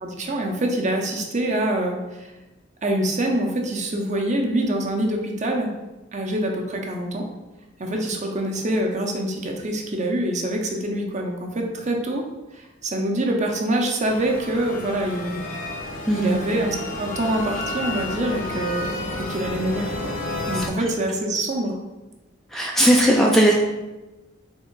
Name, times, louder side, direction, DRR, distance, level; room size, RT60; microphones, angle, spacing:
voice 1, 0.0-2.3 2.8-5.7 6.1-7.3 7.8-12.2 12.5-15.4 16.1-18.9 19.2-20.2 20.5-21.8, right 1 dB, 35° right, 1 dB, 0.7 m, -25 dB
sound 1, 14.0-20.7, left 1 dB, 45° left, 0.7 m, -31 dB
voice 2, 16.1-16.4 22.5-23.5, right 1 dB, ahead, -1 dB, 0.3 m, -17 dB
3.6 x 3.3 x 4.5 m, 1.1 s
head